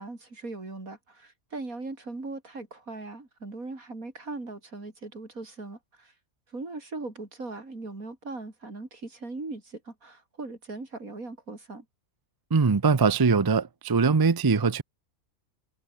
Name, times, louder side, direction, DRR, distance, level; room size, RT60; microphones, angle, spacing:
voice 1, 0.0-6.1 6.5-11.8, right 3 dB, 75° right, 4.8 m, -39 dB
voice 2, 12.5-14.8, right 4 dB, 30° right, 0.4 m, -22 dB
omnidirectional pair, 1.5 m